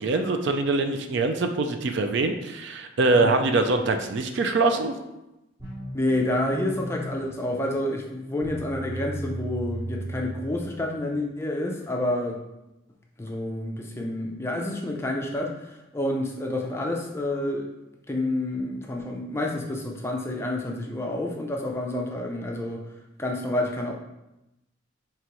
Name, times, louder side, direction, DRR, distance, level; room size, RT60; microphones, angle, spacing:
voice 1, 0.0-5.0, right 3 dB, 60° right, 6 dB, 0.4 m, -23 dB
sound 1, 5.6-11.2, right 1 dB, 20° right, 0.9 m, -36 dB
voice 2, 5.9-12.4 13.2-17.7 18.1-22.8 23.2-23.9, left 1 dB, 15° left, 0 dB, 0.4 m, -29 dB
4.8 x 2.9 x 2.9 m, 0.93 s
head